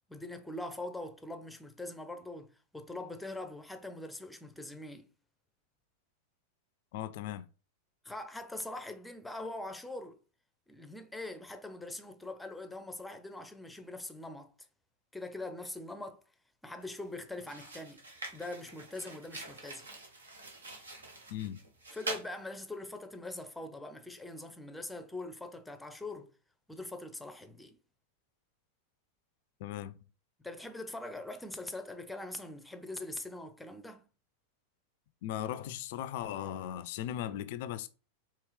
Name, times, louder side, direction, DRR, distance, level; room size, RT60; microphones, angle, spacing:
voice 1, 0.1-5.1 8.0-10.2 10.7-14.5 15.1-16.2 16.6-18.0 18.3-19.9 21.9-26.3 26.7-27.8 30.4-34.0, left 2 dB, 5° left, 0.6 m, -42 dB
voice 2, 6.9-7.5 21.3-21.6 29.6-30.0 35.2-37.9, left 11 dB, 50° left, 0.4 m, -38 dB
sound 1, 16.8-17.0 17.4-22.3, right 2 dB, 75° right, 1.2 m, -44 dB
4.6 x 3.0 x 3.2 m
figure-of-eight pair, 90°, 0 cm